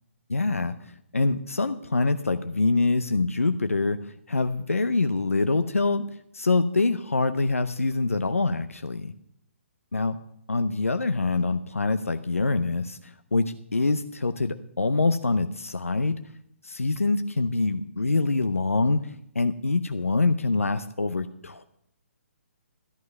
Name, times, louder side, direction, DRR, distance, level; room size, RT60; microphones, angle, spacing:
voice 1, 0.3-0.8 1.1-6.0 6.3-9.1 9.9-10.2 10.5-16.2 16.6-19.0 19.3-21.6, left 3 dB, 85° left, 9 dB, 0.7 m, -25 dB
13.5 x 9.4 x 5.4 m, 0.72 s
figure-of-eight pair, 135°, 7 cm